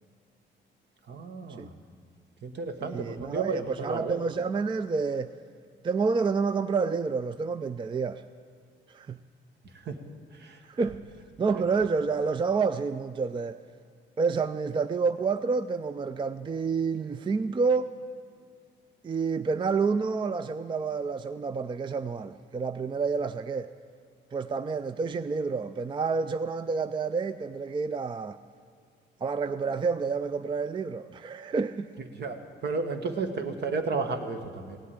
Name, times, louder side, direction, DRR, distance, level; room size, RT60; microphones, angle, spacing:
voice 1, 1.1-1.7 2.4-4.2 9.8-10.0 10.4-10.6 11.5-11.6 32.1-32.4 32.6-34.8, right 4 dB, 60° right, 1.4 m, -32 dB
voice 2, 2.8-5.3 5.8-8.2 8.9-9.2 10.6-11.0 11.4-13.6 14.2-17.9 19.0-23.7 24.3-28.4 29.2-31.9, right 5 dB, 25° right, 0.4 m, -29 dB
17.0 x 8.2 x 8.8 m
cardioid pair, 90°, 20 cm